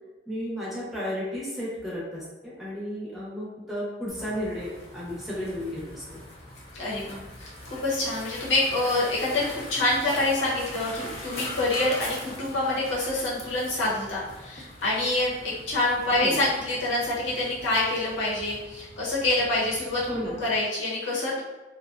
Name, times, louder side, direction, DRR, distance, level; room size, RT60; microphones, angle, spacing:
voice 1, 0.3-6.2 16.2-16.4 20.1-20.4, equal, ahead, -8 dB, 0.7 m, -33 dB
sound 1, 4.1-20.6, left 1 dB, 35° left, 0.6 m, -42 dB
voice 2, 6.7-7.2 7.7-15.3 15.7-21.4, left 2 dB, 80° left, -7 dB, 0.9 m, -26 dB
2.6 x 2.1 x 2.4 m, 1.2 s
head